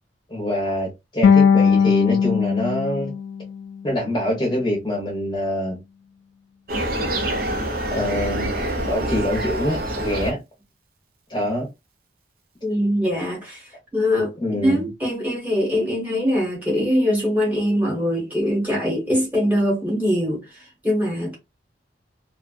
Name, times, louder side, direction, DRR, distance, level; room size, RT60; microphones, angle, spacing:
voice 1, 0.3-3.1 3.8-5.8 7.9-10.4 11.3-11.7 14.4-14.9, left 1 dB, 25° left, 0.8 m, -25 dB
sound 1, 1.2-4.3, left 6 dB, 85° left, 0.5 m, -19 dB
sound 2, 6.7-10.3, right 1 dB, 50° right, 0.6 m, -26 dB
voice 2, 12.6-13.6 13.9-14.3 14.6-20.4 20.8-21.3, equal, 10° right, 1.1 m, -22 dB
2.5 x 2.3 x 2.4 m
head